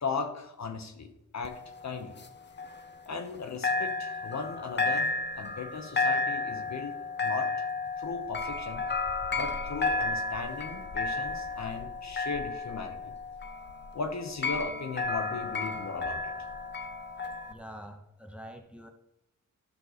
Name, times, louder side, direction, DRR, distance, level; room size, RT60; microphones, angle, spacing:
voice 1, 0.0-2.2 3.1-7.6 8.0-8.9 9.3-13.1 13.9-16.5, left 4 dB, 55° left, 7 dB, 1.0 m, -37 dB
sound 1, 1.4-3.4 3.6-17.5, left 3 dB, 35° left, 0.7 m, -33 dB
voice 2, 17.5-18.9, equal, 5° right, 5 dB, 0.9 m, -45 dB
12.0 x 6.4 x 4.1 m, 0.88 s
wide cardioid pair, 170°, 33 cm